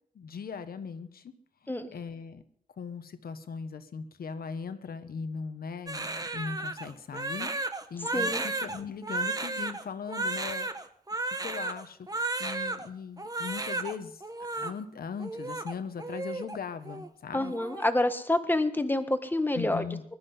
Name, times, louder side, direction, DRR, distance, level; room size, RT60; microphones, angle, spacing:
voice 1, 0.1-1.3 1.9-2.4 2.8-7.5 7.9-10.9 11.4-14.2 14.5-17.5 19.5-20.0, left 6 dB, 80° left, 10 dB, 1.3 m, -39 dB
Crying sobbing, 5.9-12.9 13.2-14.0 14.2-14.7 15.2-16.6 16.9-17.1 17.4-17.9, right 2 dB, 25° right, 1.2 m, -33 dB
voice 2, 8.1-8.4 17.3-19.8, left 1 dB, 15° left, 8 dB, 1.5 m, -27 dB
20.5 x 12.0 x 5.6 m, 0.62 s
wide cardioid pair, 90°, 15 cm